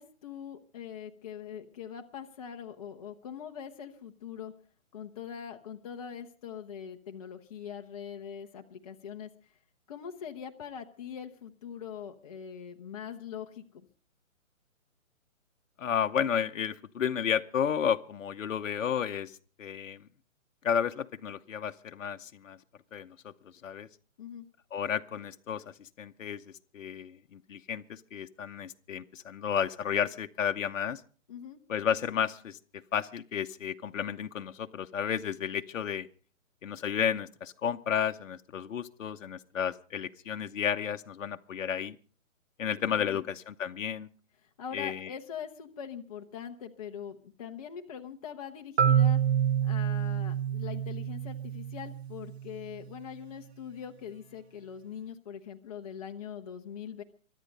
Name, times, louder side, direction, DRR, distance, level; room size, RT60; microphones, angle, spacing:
voice 1, 0.0-4.5 4.9-9.5 9.9-13.9 24.2-24.5 31.3-31.6 43.1-43.3 44.4-49.2 49.6-57.0, left 8 dB, 25° left, 3 dB, 0.9 m, -42 dB
voice 2, 15.8-20.1 20.6-22.6 22.9-23.3 23.6-23.9 24.7-26.4 26.7-31.0 31.7-32.6 32.9-36.1 36.6-42.0 42.6-44.1 44.7-45.1, left 8 dB, 65° left, 7 dB, 0.9 m, -32 dB
Marimba xylophone, 48.8-52.7, right 9 dB, 50° right, 0.8 m, -28 dB
24.0 x 9.3 x 5.3 m, 0.42 s
hypercardioid pair, 160°, 41 cm